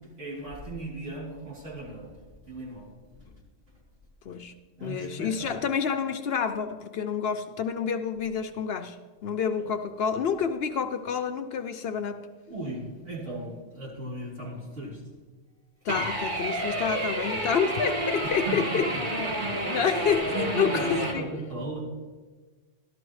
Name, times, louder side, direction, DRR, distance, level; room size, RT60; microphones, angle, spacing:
voice 1, 0.2-3.2 4.8-5.6 9.6-9.7 12.5-15.0 18.4-19.0 19.5-19.7 20.3-21.8, right 1 dB, 75° right, -7 dB, 4.4 m, -36 dB
voice 2, 4.8-12.2 15.8-18.9 19.7-21.3, left 7 dB, 60° left, 8 dB, 0.7 m, -28 dB
sound 1, 15.9-21.1, right 1 dB, 40° right, 1.9 m, -30 dB
13.0 x 12.0 x 3.2 m, 1.3 s
omnidirectional pair, 1.2 m